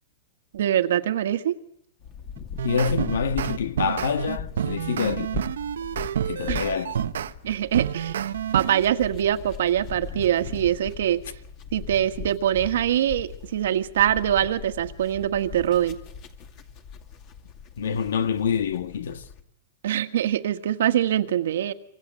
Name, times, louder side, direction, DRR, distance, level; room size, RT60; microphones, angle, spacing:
voice 1, 0.5-1.6 6.5-6.6 7.4-8.1 8.5-11.2 11.7-16.0 19.8-21.7, right 11 dB, 70° right, 1.7 m, -23 dB
sound 1, 2.0-19.4, left 6 dB, 30° left, 2.5 m, -40 dB
sound 2, 2.4-7.3 7.7-8.8, right 9 dB, 85° right, 1.1 m, -29 dB
voice 2, 2.6-5.5 6.3-7.0 17.8-19.2, left 6 dB, 85° left, 1.9 m, -26 dB
26.0 x 25.0 x 7.8 m
supercardioid pair, 160°, 0 cm